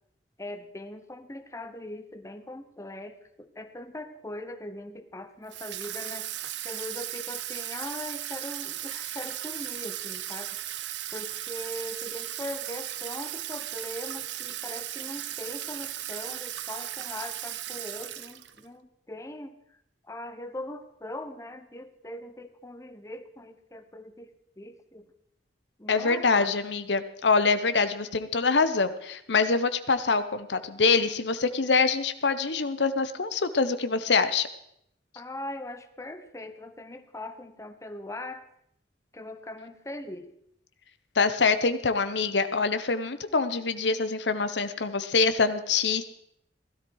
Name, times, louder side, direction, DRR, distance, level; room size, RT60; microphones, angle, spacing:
voice 1, 0.4-6.3 6.6-10.6 11.1-19.8 20.0-25.1 25.8-26.5 35.1-38.4 39.1-40.3, left 1 dB, 15° left, 8 dB, 0.9 m, -40 dB
Water tap faucet / Sink (filling or washing), 5.5-18.6, right 13 dB, 75° right, 0.7 m, -36 dB
voice 2, 25.9-34.5 41.1-46.0, left 4 dB, 75° left, 11 dB, 0.9 m, -25 dB
16.5 x 13.0 x 4.7 m, 0.73 s
head